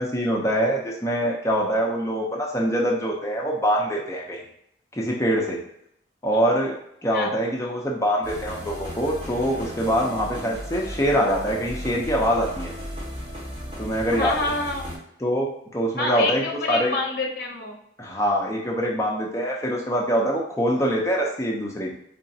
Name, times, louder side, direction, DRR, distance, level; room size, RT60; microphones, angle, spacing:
voice 1, 0.0-4.4 4.9-5.6 6.2-6.8 7.0-12.7 13.8-14.4 15.2-16.9 18.0-21.9, equal, 15° left, -2 dB, 0.5 m, -24 dB
sound 1, 8.2-15.0, equal, 25° right, 1.0 m, -35 dB
voice 2, 14.1-15.0 16.0-17.8, left 2 dB, 55° left, 1 dB, 0.7 m, -27 dB
3.9 x 3.3 x 2.7 m, 0.76 s
head